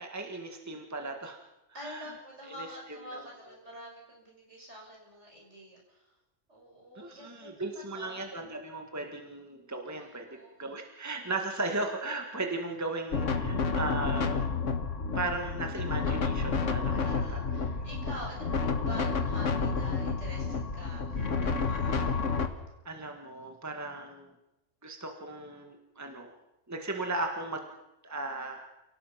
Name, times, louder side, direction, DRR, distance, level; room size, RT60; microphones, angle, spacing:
voice 1, 0.0-1.4 1.8-2.1 2.6-2.7 3.1-3.2 7.0-10.3 10.6-14.5 15.2-17.8 22.9-24.3 24.8-26.4 26.7-27.7 28.0-28.7, right 2 dB, 15° right, 3 dB, 1.7 m, -36 dB
voice 2, 1.7-6.2 6.5-8.4 10.0-10.6 16.9-22.2, equal, 60° right, -2 dB, 7.0 m, -47 dB
sound 1, 13.1-22.5, left 4 dB, 70° left, 1.8 m, -30 dB
28.5 x 18.0 x 5.8 m, 0.93 s
omnidirectional pair, 1.3 m